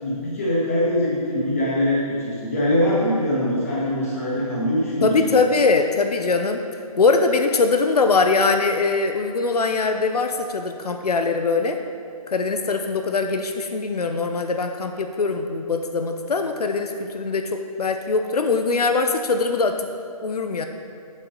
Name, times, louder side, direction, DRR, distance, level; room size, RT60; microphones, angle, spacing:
voice 1, 0.0-5.5, left 1 dB, 25° left, -7 dB, 1.6 m, -23 dB
voice 2, 5.0-6.6 7.0-11.8 12.3-19.9 20.2-20.7, left 4 dB, 90° left, 6 dB, 0.7 m, -22 dB
7.5 x 6.1 x 5.2 m, 2.3 s
hypercardioid pair, 180°, 19 cm